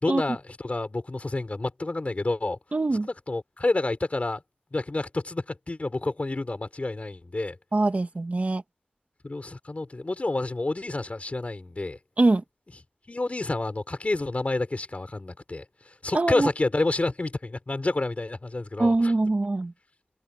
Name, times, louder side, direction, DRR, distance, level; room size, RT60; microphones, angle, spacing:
voice 1, 0.0-2.6 3.3-4.4 4.7-7.6 9.2-12.0 13.1-15.6 16.0-19.1, left 2 dB, 50° left, 5.2 m, -29 dB
voice 2, 2.7-3.1 7.7-8.6 12.2-12.4 16.1-16.5 18.8-19.7, right 2 dB, 55° right, 2.4 m, -23 dB
wide cardioid pair, 70°, 3 cm